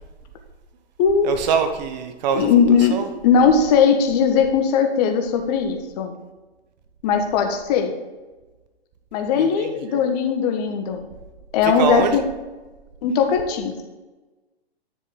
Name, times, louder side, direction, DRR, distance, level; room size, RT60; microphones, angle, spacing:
voice 1, 1.2-2.5 2.9-3.1 9.4-9.7 11.8-12.3, right 6 dB, 40° right, 7 dB, 1.1 m, -23 dB
voice 2, 2.3-3.0 3.2-6.1 7.0-7.9 9.1-11.0 11.5-12.2 13.0-13.7, left 6 dB, 40° left, 5 dB, 1.3 m, -19 dB
10.5 x 6.8 x 3.9 m, 1.2 s
figure-of-eight pair, 120°, 32 cm